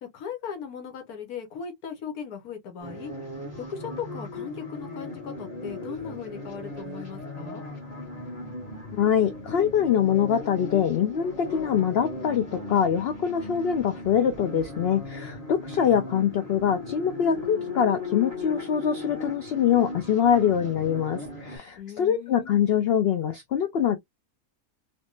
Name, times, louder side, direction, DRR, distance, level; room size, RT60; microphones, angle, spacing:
voice 1, 0.0-3.1 3.6-7.6 21.8-22.6, left 7 dB, 85° left, 1.4 m, -38 dB
sound 1, 2.8-21.6, left 2 dB, 25° left, 1.5 m, -37 dB
voice 2, 8.9-24.0, left 8 dB, 70° left, 0.6 m, -24 dB
3.4 x 2.6 x 2.4 m
omnidirectional pair, 1.5 m